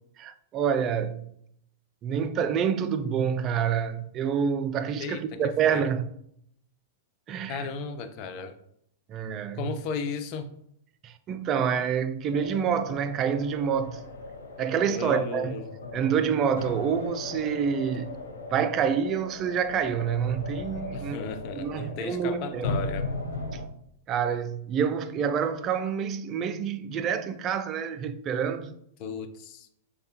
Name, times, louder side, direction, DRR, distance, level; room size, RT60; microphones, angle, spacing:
voice 1, 0.2-1.3 2.0-6.1 7.3-7.7 9.1-9.8 11.0-14.0 14.6-15.6 15.9-18.1 18.5-21.2 21.5-22.9 23.5-23.6 24.1-28.7, right 7 dB, 30° right, 0.4 m, -27 dB
voice 2, 7.5-8.5 9.6-10.5 14.8-15.7 20.9-23.1 29.0-29.7, left 5 dB, 45° left, 0.5 m, -35 dB
sound 1, 12.3-23.6, left 3 dB, 85° left, 0.7 m, -37 dB
6.5 x 2.3 x 2.8 m
hypercardioid pair, 120°, 0 cm